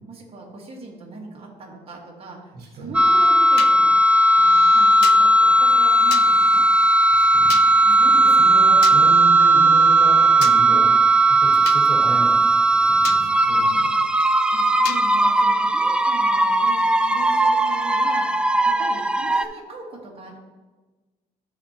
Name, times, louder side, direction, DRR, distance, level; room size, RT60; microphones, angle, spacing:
voice 1, 0.1-4.0 4.3-6.7 7.8-8.4 10.7-10.9 13.4-13.5 14.5-20.4, right 3 dB, 35° right, -2 dB, 1.6 m, -40 dB
voice 2, 2.5-2.9 7.1-7.6 7.9-10.9 11.4-12.4 12.7-13.9, right 3 dB, 70° right, 1 dB, 1.5 m, -33 dB
sound 1, 2.9-19.5, right 1 dB, 5° right, 0.3 m, -17 dB
sound 2, 3.6-3.7 5.0-5.2 6.1-6.3 7.5-7.7 8.8-9.0 10.4-10.6 11.7-11.8 13.0-13.2 14.9-15.0, left 12 dB, 85° left, 0.5 m, -30 dB
13.0 x 4.3 x 2.9 m, 1.3 s
cardioid pair, 110°, 17 cm